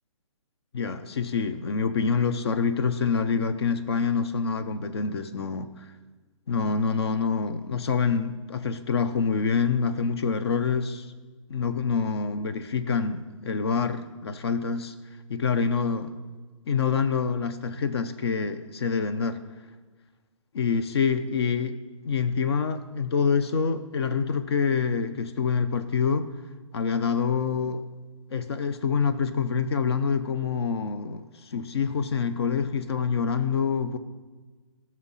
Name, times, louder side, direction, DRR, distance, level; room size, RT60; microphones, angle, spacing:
voice 1, 0.7-5.7 6.5-11.1 11.5-14.9 15.3-16.1 16.7-19.4 20.5-21.8 22.0-26.3 26.7-27.8 28.3-34.0, left 5 dB, 50° left, 12 dB, 0.7 m, -26 dB
15.0 x 6.3 x 5.6 m, 1.3 s
hypercardioid pair, 165°, 17 cm